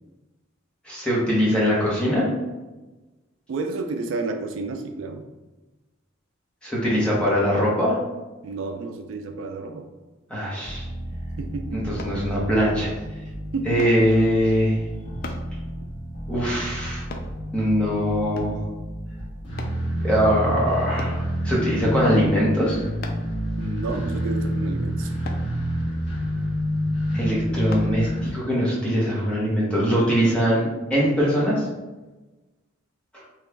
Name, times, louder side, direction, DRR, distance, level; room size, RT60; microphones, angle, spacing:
voice 1, 0.9-2.3 6.6-8.0 10.3-10.8 11.7-12.9 13.7-14.8 16.3-17.0 17.5-18.6 20.0-22.8 27.1-31.7, equal, 5° left, -6 dB, 0.8 m, -22 dB
voice 2, 3.5-5.2 8.4-9.9 11.4-11.9 13.5-13.8 23.6-25.1, right 3 dB, 70° right, 5 dB, 0.3 m, -31 dB
sound 1, 10.6-28.3, equal, 25° left, 1.3 m, -29 dB
sound 2, 12.0-12.2 13.8-14.0 15.2-15.5 17.1-17.3 18.3-18.6 19.6-19.8 21.0-21.2 23.0-23.3 25.2-25.5 27.7-27.9 28.5-28.6, left 3 dB, 50° left, 0.4 m, -37 dB
2.9 x 2.3 x 3.3 m, 1.1 s
head